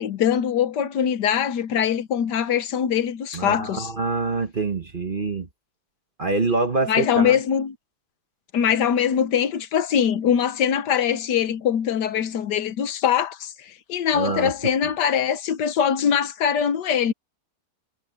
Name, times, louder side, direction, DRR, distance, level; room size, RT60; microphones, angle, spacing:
voice 1, 0.0-3.9 6.9-7.8 8.5-17.1, left 8 dB, 75° left, 1.5 m, -22 dB
voice 2, 3.3-5.5 6.2-7.4 14.1-14.5, right 3 dB, 35° right, 1.1 m, -25 dB
omnidirectional pair, 1.9 m